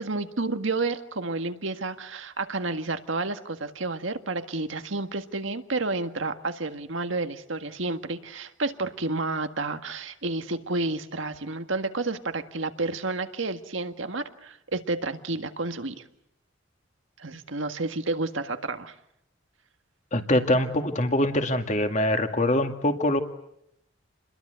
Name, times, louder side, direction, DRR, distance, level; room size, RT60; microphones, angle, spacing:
voice 1, 0.0-16.0 17.2-18.9, right 3 dB, 80° right, 8 dB, 1.7 m, -30 dB
voice 2, 20.1-23.2, left 1 dB, 40° left, 6 dB, 2.2 m, -24 dB
29.0 x 22.0 x 8.1 m, 0.79 s
head